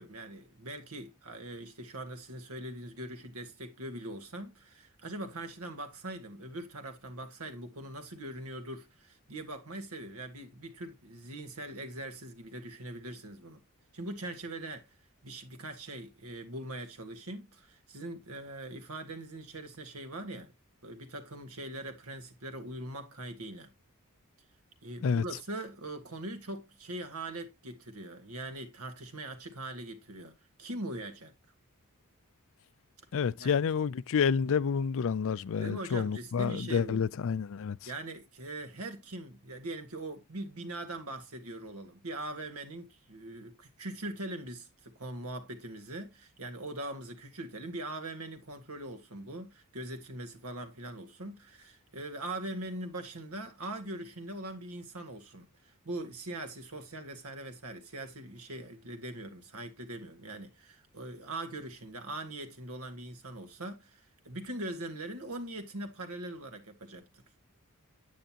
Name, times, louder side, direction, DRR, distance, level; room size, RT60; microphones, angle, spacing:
voice 1, 0.0-13.6 13.9-14.9 15.2-20.5 20.8-23.7 24.8-30.3 30.6-31.3 33.4-33.5 35.6-37.1 37.8-67.2, right 1 dB, 75° right, 1.8 m, -41 dB
voice 2, 33.1-37.8, left 6 dB, 65° left, 0.4 m, -29 dB
9.2 x 8.9 x 2.9 m
head